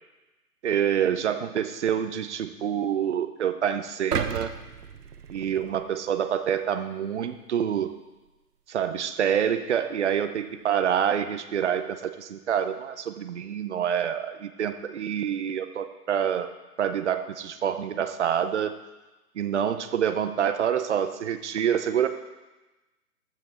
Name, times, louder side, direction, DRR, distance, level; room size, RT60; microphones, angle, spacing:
voice 1, 0.6-4.5 5.3-7.9 8.7-16.5 16.8-18.7 19.4-22.1, right 9 dB, 45° right, 10 dB, 0.8 m, -27 dB
sound 1, 4.1-6.3 6.8-6.9, right 7 dB, 70° right, 0.9 m, -33 dB
14.0 x 6.0 x 4.4 m, 1.1 s
hypercardioid pair, 145°, 48 cm